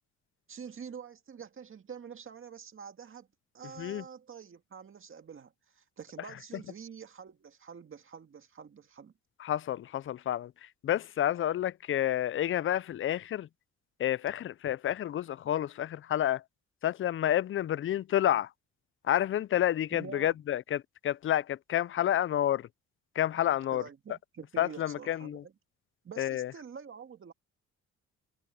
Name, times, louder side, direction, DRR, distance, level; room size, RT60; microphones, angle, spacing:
voice 1, 0.5-3.3 3.5-9.1 19.9-20.4 23.7-25.5 26.0-27.3, right 7 dB, 45° right, 2.0 m, -47 dB
voice 2, 9.4-13.5 14.0-16.4 16.8-18.5 19.0-22.7 23.2-23.8 24.6-25.4 26.2-26.5, left 11 dB, 45° left, 0.5 m, -29 dB
cardioid pair, 90°, 30 cm